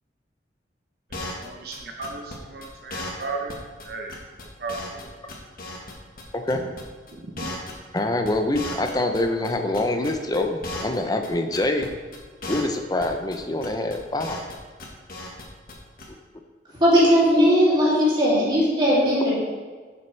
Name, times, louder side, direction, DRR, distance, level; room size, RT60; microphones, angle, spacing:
sound 1, 1.1-1.5 1.7-1.8 2.0-2.4 2.6-2.7 2.9-3.2 3.5-3.6 3.8-3.9 4.1-5.0 5.3-6.2 6.5-6.8 7.1-9.2 9.4-11.0 11.2-11.3 11.5-11.9 12.1-12.2 12.4-12.8 13.0-13.4 13.6-14.5 14.8-15.4 15.7-15.8 16.0-16.1, left 2 dB, 55° left, 1.5 m, -35 dB
voice 1, 1.1-3.5 3.8-4.1 4.6-5.1 7.2-7.5, right 3 dB, 60° right, 0.8 m, -35 dB
voice 2, 6.3-6.6 7.9-11.9 12.5-14.5, left 2 dB, 20° left, 0.7 m, -25 dB
voice 3, 16.8-19.3, equal, 25° right, 2.8 m, -18 dB
11.0 x 7.0 x 3.3 m
head